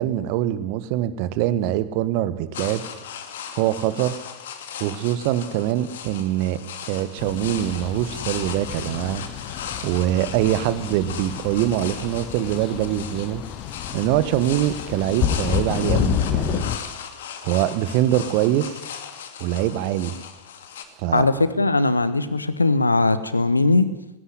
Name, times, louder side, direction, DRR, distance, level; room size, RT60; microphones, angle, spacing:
voice 1, 0.0-2.8 3.6-4.2 4.8-9.2 9.8-13.4 13.9-16.6 17.4-18.7 19.4-20.1 21.0-21.3, right 13 dB, 45° right, 15 dB, 1.5 m, -23 dB
sound 1, 2.5-20.9, left 8 dB, 60° left, 2.6 m, -37 dB
sound 2, 7.2-16.8, left 10 dB, 35° left, 1.4 m, -29 dB
voice 2, 21.1-23.9, left 3 dB, 80° left, 14 dB, 1.4 m, -19 dB
19.0 x 17.5 x 9.8 m, 0.93 s
figure-of-eight pair, 90°, 0 cm